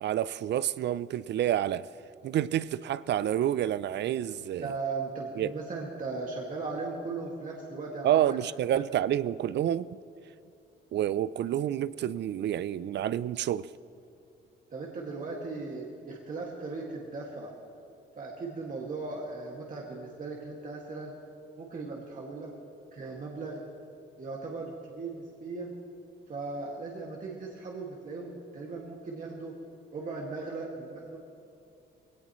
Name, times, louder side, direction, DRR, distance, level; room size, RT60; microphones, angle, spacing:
voice 1, 0.0-1.9 2.2-4.7 5.4-5.5 8.0-10.0 10.9-13.7, right 11 dB, 60° right, 0.5 m, -28 dB
voice 2, 4.6-8.8 14.7-17.5 18.2-21.1 21.6-22.5 22.9-23.6 24.2-25.7 26.3-29.6 29.9-31.2, right 3 dB, 40° right, 2.1 m, -38 dB
20.5 x 18.0 x 3.1 m
cardioid pair, 90°, 20 cm